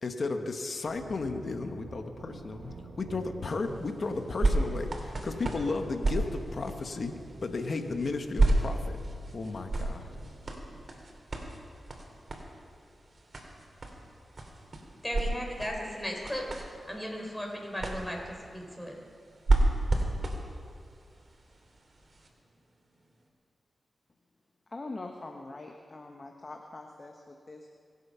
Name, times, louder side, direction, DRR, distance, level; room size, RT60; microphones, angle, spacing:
voice 1, 0.0-8.9 9.3-10.1, left 3 dB, 60° left, 6 dB, 1.3 m, -34 dB
sound 1, 0.8-10.8, right 3 dB, 90° right, 1.5 m, -48 dB
sound 2, 3.5-22.3 22.9-23.0, right 2 dB, 50° right, 2.7 m, -33 dB
voice 2, 15.0-16.5 16.9-19.0, equal, 10° left, 0 dB, 4.8 m, -36 dB
voice 3, 24.7-27.7, left 2 dB, 45° left, 3 dB, 1.2 m, -43 dB
23.5 x 8.0 x 5.7 m, 2.2 s
cardioid pair, 45°, 0 cm